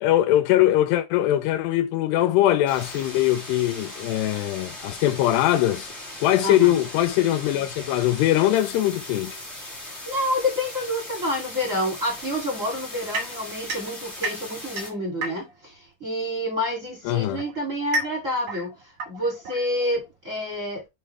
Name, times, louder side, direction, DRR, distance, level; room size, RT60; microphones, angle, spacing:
voice 1, 0.0-5.9 6.2-9.4 17.1-17.4, left 13 dB, 80° left, 2.6 m, -21 dB
sound 1, 2.6-14.9, left 1 dB, 20° left, 2.1 m, -39 dB
voice 2, 6.4-6.8 10.0-20.9, left 1 dB, 25° right, 2.0 m, -28 dB
sound 2, 13.1-15.7 16.8-20.1, right 2 dB, 55° right, 2.1 m, -33 dB
6.5 x 5.5 x 3.3 m
omnidirectional pair, 4.9 m